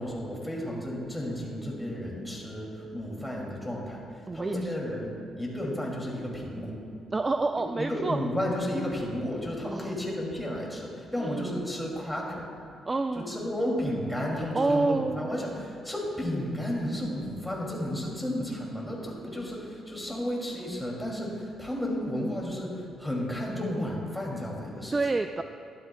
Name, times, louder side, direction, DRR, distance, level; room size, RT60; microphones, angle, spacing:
voice 1, 0.0-6.8 7.8-12.5 13.1-25.0, equal, 5° left, -3 dB, 2.5 m, -32 dB
voice 2, 4.3-4.7 7.1-8.2 9.7-9.9 11.2-11.5 12.9-13.4 14.5-15.5 24.9-25.4, right 3 dB, 25° right, 7 dB, 0.3 m, -28 dB
12.5 x 12.0 x 2.2 m, 2.6 s
cardioid pair, 90°, 0 cm